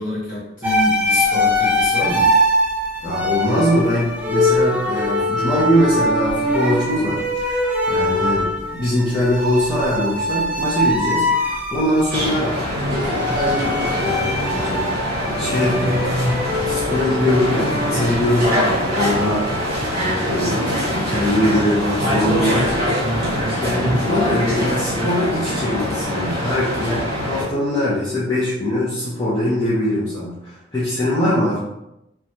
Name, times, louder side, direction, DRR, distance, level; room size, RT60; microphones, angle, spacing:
voice 1, 0.0-2.3 7.9-8.2 23.5-23.8, left 1 dB, 45° left, -8 dB, 1.2 m, -27 dB
sound 1, 0.6-20.0, left 1 dB, 10° right, 0.3 m, -22 dB
voice 2, 3.0-7.6 7.9-8.5 8.8-12.6 12.9-14.8 15.4-16.2 16.6-19.5 20.0-20.7 21.0-22.7 23.6-31.6, left 1 dB, 20° left, -10 dB, 0.7 m, -22 dB
Office Room Sound Fx, 12.1-27.4, equal, 50° right, 1.1 m, -23 dB
3.1 x 2.3 x 2.7 m, 0.88 s
head